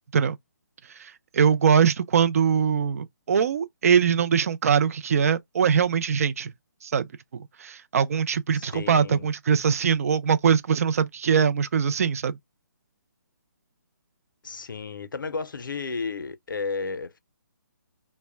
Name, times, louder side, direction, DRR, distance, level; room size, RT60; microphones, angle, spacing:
voice 1, 1.0-6.5 6.8-12.4, right 7 dB, 45° right, 0.4 m, -22 dB
voice 2, 8.5-9.3 14.4-17.2, left 4 dB, 85° left, 0.5 m, -33 dB
2.1 x 2.1 x 3.2 m
hypercardioid pair, 155°, 11 cm